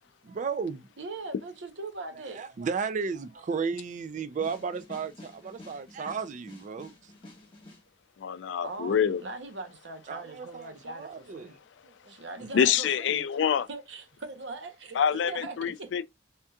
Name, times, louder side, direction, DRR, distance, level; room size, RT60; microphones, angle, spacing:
voice 1, 0.2-0.9 2.3-6.9 10.1-11.5 11.8-12.1 12.4-12.7 15.1-15.2, right 5 dB, 45° right, 0.4 m, -34 dB
voice 2, 1.0-2.4 8.6-11.6 12.1-13.2 13.7-15.0 15.3-15.9, right 3 dB, 75° right, 0.8 m, -41 dB
sound 1, 4.4-7.8, left 1 dB, 30° left, 1.3 m, -50 dB
voice 3, 8.2-9.2 12.5-13.7 14.9-16.0, left 8 dB, 75° left, 0.3 m, -26 dB
3.5 x 2.8 x 2.3 m
head